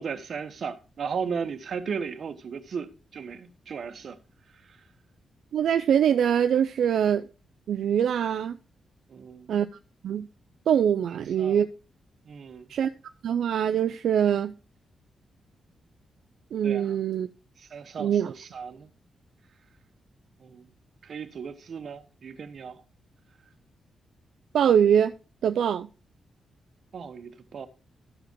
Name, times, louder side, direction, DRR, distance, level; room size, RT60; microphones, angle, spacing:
voice 1, 0.0-4.2 9.1-9.5 11.1-11.6 12.3-12.7 16.6-16.9 17.6-18.9 20.4-20.7 21.0-22.8 26.9-27.7, right 6 dB, 60° right, 1.1 m, -36 dB
voice 2, 5.5-7.3 7.7-8.6 9.5-9.7 10.0-10.3 10.7-11.7 12.7-12.9 13.2-14.5 16.5-17.3 18.0-18.3 24.5-25.1 25.4-25.9, right 9 dB, 80° right, 0.5 m, -23 dB
13.5 x 4.9 x 4.6 m
cardioid pair, 105°, 0 cm